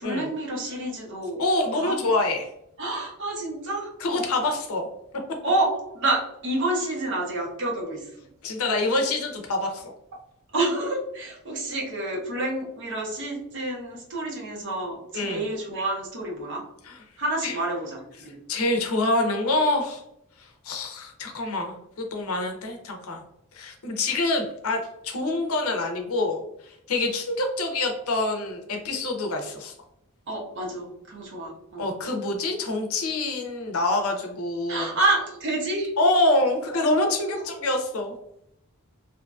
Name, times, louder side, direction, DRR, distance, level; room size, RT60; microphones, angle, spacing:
voice 1, 0.0-1.4 1.7-2.0 2.8-3.9 5.4-8.1 10.5-16.6 17.2-18.4 30.3-31.9 34.7-35.9 37.0-37.1, right 2 dB, 55° right, -2 dB, 0.9 m, -28 dB
voice 2, 1.4-2.5 4.0-4.9 8.4-9.9 15.1-15.4 16.9-17.0 17.4-17.6 18.3-20.0 20.4-23.2 23.5-29.7 31.8-35.0 36.0-38.2, left 2 dB, 80° left, 3 dB, 0.6 m, -26 dB
2.7 x 2.5 x 2.3 m, 0.77 s
head